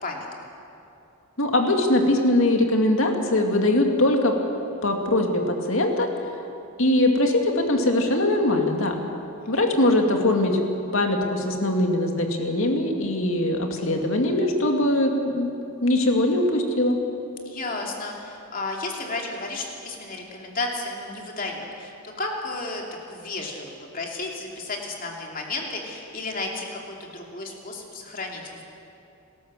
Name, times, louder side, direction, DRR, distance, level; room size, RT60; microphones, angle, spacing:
voice 1, 1.4-4.3 4.8-6.1 6.8-8.9 9.5-10.6 10.9-15.5 15.8-17.0, left 1 dB, 60° left, 3 dB, 2.4 m, -21 dB
voice 2, 17.4-28.6, left 2 dB, 40° left, 0 dB, 2.9 m, -33 dB
28.5 x 13.5 x 7.6 m, 2.8 s
head